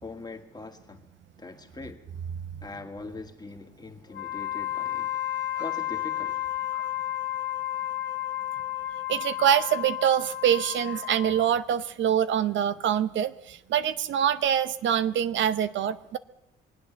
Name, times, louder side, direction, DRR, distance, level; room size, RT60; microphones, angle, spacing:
voice 1, 0.0-1.1 1.4-2.1 2.6-5.2 5.6-6.5, left 3 dB, 20° left, 1.8 m, -42 dB
Wind instrument woodwind instrument, 4.1-11.6, left 13 dB, 60° left, 2.2 m, -32 dB
voice 2, 9.1-16.2, right 9 dB, 70° right, 0.7 m, -25 dB
24.0 x 8.7 x 6.9 m
cardioid pair, 90°, 20 cm